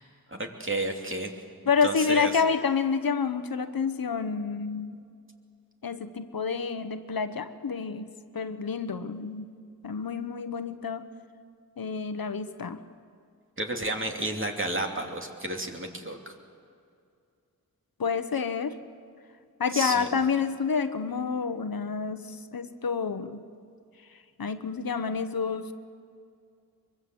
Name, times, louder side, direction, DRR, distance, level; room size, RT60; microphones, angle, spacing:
voice 1, 0.3-1.3 1.8-2.4 13.6-16.3 19.7-20.1, right 2 dB, 35° right, 2 dB, 2.9 m, -31 dB
voice 2, 1.7-5.0 5.8-9.5 9.8-11.1 11.8-12.8 18.0-18.8 19.6-23.4 24.4-25.7, left 5 dB, 70° left, 10 dB, 1.1 m, -28 dB
23.5 x 23.0 x 7.9 m, 2.4 s
wide cardioid pair, 70°, 36 cm